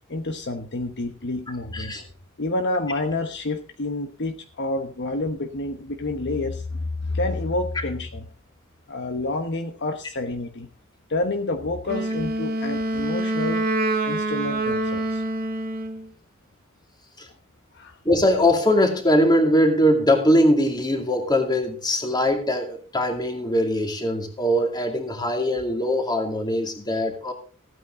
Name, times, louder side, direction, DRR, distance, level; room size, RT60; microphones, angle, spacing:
voice 1, 0.1-2.1 2.4-8.3 8.9-10.7 11.1-13.6 14.0-15.2 17.7-18.0, left 2 dB, 55° left, 6 dB, 1.1 m, -28 dB
Wind instrument woodwind instrument, 11.9-16.1, right 1 dB, 45° right, 1.7 m, -26 dB
voice 2, 18.0-27.3, equal, 20° left, 4 dB, 2.4 m, -21 dB
15.5 x 9.2 x 3.8 m, 0.36 s
head